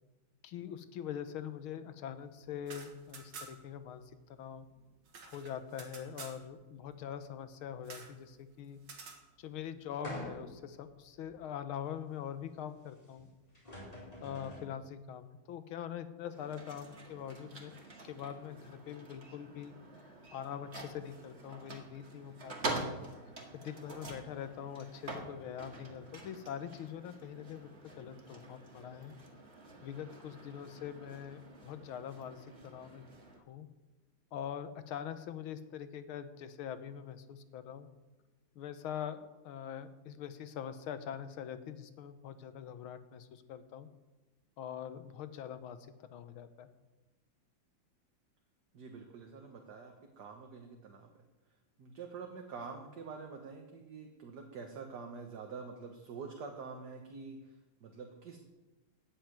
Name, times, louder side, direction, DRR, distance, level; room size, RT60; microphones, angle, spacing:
voice 1, 0.4-4.7 5.2-8.8 9.4-13.3 14.2-17.8 18.0-19.8 20.3-23.0 23.5-29.1 29.8-33.0 33.5-33.7 34.3-37.9 38.6-43.9 44.6-46.7, left 9 dB, 80° left, 11 dB, 1.8 m, -43 dB
sound 1, 2.5-3.8 4.0-4.1 4.4-6.4 7.8-8.2 8.8-9.2, right 4 dB, 75° right, 2.6 m, -50 dB
sound 2, 10.0-10.7 11.3-11.4 13.2-13.3 13.5-14.7, left 1 dB, 15° left, 4.5 m, -45 dB
sound 3, 16.2-33.4, right 2 dB, 30° right, 2.1 m, -46 dB
voice 2, 48.7-51.2 51.8-58.4, right 5 dB, 55° right, 3 dB, 1.7 m, -46 dB
13.5 x 6.9 x 9.1 m, 1.1 s
omnidirectional pair, 2.3 m